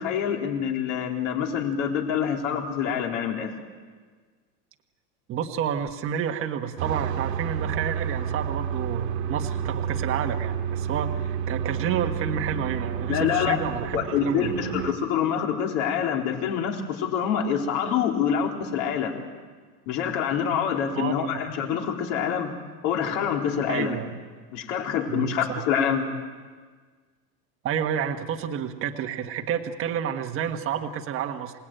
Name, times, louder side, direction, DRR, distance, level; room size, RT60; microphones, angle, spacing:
voice 1, 0.0-3.6 13.1-13.6 13.9-19.1 19.9-22.5 22.8-24.0 24.5-26.1, left 8 dB, 55° left, 1 dB, 4.0 m, -26 dB
voice 2, 5.3-14.7 20.9-21.1 23.7-24.2 25.1-25.6 27.6-31.5, right 8 dB, 25° right, 4 dB, 1.5 m, -30 dB
sound 1, 6.8-14.9, right 8 dB, 75° right, 2.4 m, -30 dB
27.5 x 19.0 x 9.1 m, 1.5 s
supercardioid pair, 155°, 49 cm